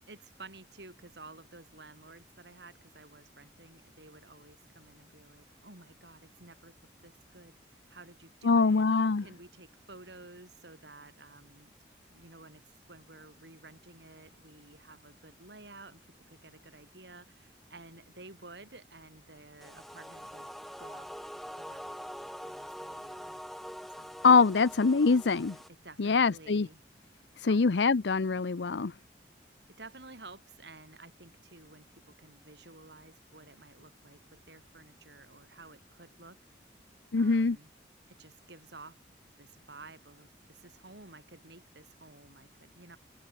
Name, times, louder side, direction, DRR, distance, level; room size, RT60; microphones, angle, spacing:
voice 1, 0.1-6.8 7.0-8.8 9.2-11.7 12.1-20.5 20.8-21.1 21.6-23.4 23.9-24.2 25.8-26.8 27.4-27.6 29.8-36.4 37.1-37.7 38.1-39.0 39.4-43.0, right 2 dB, 70° right, 5.3 m, -52 dB
voice 2, 8.4-9.2 24.2-25.6 26.0-26.7 27.4-28.9 37.1-37.6, left 4 dB, 75° left, 0.6 m, -24 dB
sound 1, 19.6-25.7, equal, ahead, 6.4 m, -44 dB
head